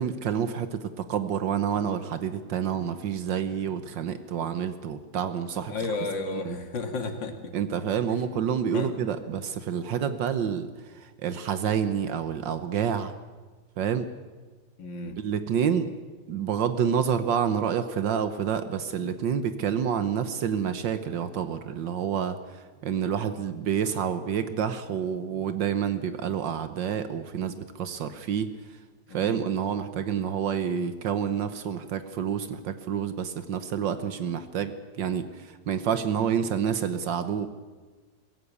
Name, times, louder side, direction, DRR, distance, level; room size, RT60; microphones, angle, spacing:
voice 1, 0.0-5.7 6.3-6.6 7.5-13.1 13.8-14.1 15.2-15.9 16.3-28.5 29.1-37.5, right 8 dB, 75° right, 10 dB, 1.7 m, -28 dB
voice 2, 5.7-7.5 8.7-8.9 14.8-15.2 29.1-29.4, left 3 dB, 75° left, 5 dB, 2.8 m, -32 dB
23.5 x 16.0 x 8.3 m, 1.3 s
omnidirectional pair, 2.0 m